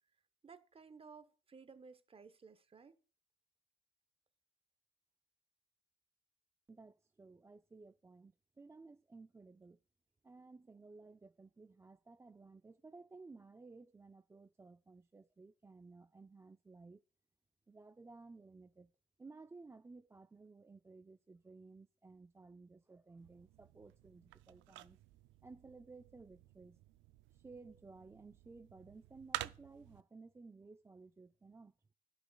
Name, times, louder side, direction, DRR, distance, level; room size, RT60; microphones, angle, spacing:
voice 1, 0.4-3.0, right 5 dB, 30° right, 0.9 m, -57 dB
voice 2, 6.7-9.8 10.2-17.0 17.7-18.9 19.2-25.0 25.4-26.8 27.3-31.7, right 3 dB, 15° right, 0.3 m, -57 dB
sound 1, 23.2-30.0, right 16 dB, 85° right, 0.4 m, -50 dB
12.5 x 5.3 x 2.2 m
supercardioid pair, 70°, 19 cm